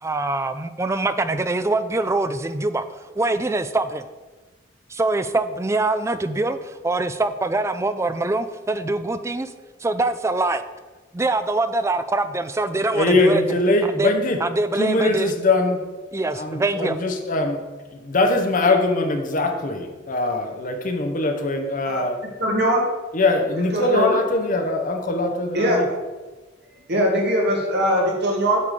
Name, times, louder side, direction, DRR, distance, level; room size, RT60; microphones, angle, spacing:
voice 1, 0.0-2.8 3.2-4.0 4.9-9.5 9.8-10.6 11.1-13.4 13.8-14.1 14.4-15.3 16.1-17.0, right 2 dB, 15° right, 11 dB, 0.3 m, -24 dB
voice 2, 12.9-14.4 14.8-15.9 16.3-17.6 17.9-22.3 23.1-25.9, left 2 dB, 45° left, 5 dB, 0.9 m, -22 dB
voice 3, 22.4-22.8 23.7-24.2 25.5-25.8 26.9-28.6, equal, 55° right, -1 dB, 1.8 m, -20 dB
8.3 x 3.7 x 6.5 m, 1.2 s
head